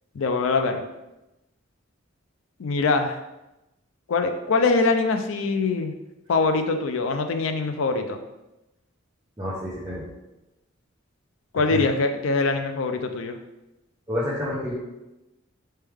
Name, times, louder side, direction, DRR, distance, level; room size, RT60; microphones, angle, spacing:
voice 1, 0.1-0.8 2.6-3.2 4.1-5.9 6.3-8.2 11.5-13.4, left 3 dB, 75° left, 7 dB, 0.4 m, -23 dB
voice 2, 9.4-10.1 11.7-11.8 14.1-14.7, left 1 dB, 20° right, -9 dB, 0.8 m, -29 dB
4.4 x 3.3 x 3.4 m, 0.97 s
head